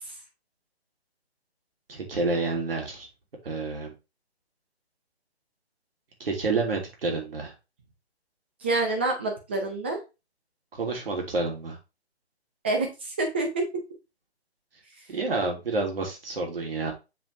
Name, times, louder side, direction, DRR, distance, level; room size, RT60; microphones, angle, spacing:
voice 1, 1.9-3.1 3.4-3.9 6.2-7.5 10.7-11.8 15.1-16.9, right 3 dB, 60° right, 1 dB, 3.1 m, -29 dB
voice 2, 8.6-10.0 12.6-13.7, right 2 dB, 10° right, 3 dB, 0.6 m, -27 dB
7.4 x 5.1 x 3.3 m, 0.27 s
hypercardioid pair, 165°, 33 cm